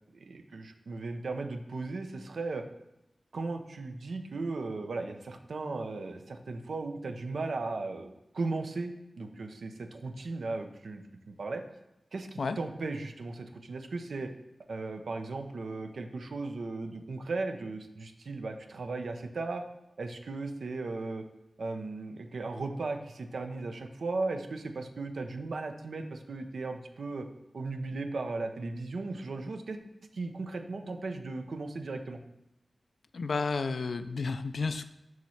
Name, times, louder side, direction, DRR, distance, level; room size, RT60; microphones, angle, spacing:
voice 1, 0.1-2.6 3.3-11.6 12.1-14.3 14.7-19.6 20.0-21.3 21.6-27.3 27.5-29.8 30.1-32.2, right 3 dB, 80° right, 6 dB, 0.6 m, -36 dB
voice 2, 33.1-34.8, left 4 dB, 75° left, 11 dB, 0.3 m, -31 dB
7.2 x 3.1 x 5.7 m, 0.90 s
wide cardioid pair, 80°, 0 cm